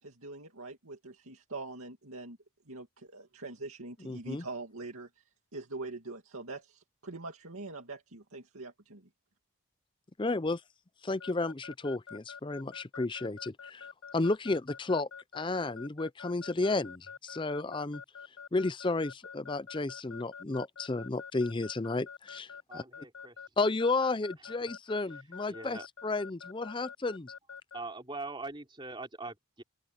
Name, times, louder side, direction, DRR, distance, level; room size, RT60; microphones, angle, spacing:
voice 1, 0.0-2.4 2.7-5.2 5.5-9.1, right 3 dB, 80° right, 2.4 m, -43 dB
voice 2, 4.0-4.5 10.2-10.6 11.0-13.9 14.1-15.1 15.3-18.0 18.5-22.8 23.6-27.3, left 3 dB, 20° left, 0.5 m, -32 dB
Keyboard (musical) / Alarm, 11.2-27.8, left 6 dB, 85° left, 4.9 m, -46 dB
voice 3, 22.7-23.3 24.6-24.7 25.5-25.9 27.7-29.6, right 3 dB, 20° right, 3.2 m, -42 dB
open air
head